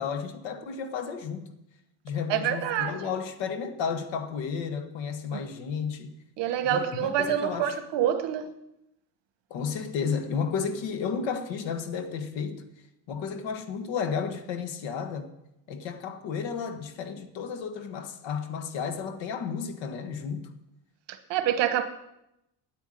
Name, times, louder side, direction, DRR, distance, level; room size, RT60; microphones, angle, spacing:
voice 1, 0.0-1.5 2.0-6.1 6.6-7.8 9.5-12.7 13.1-15.3 15.7-20.5, left 6 dB, 80° left, 1.6 m, -32 dB
voice 2, 2.3-3.0 5.3-5.4 6.4-8.5 21.1-21.9, right 10 dB, 70° right, 1.2 m, -27 dB
9.2 x 9.1 x 9.1 m
cardioid pair, 170°, 44 cm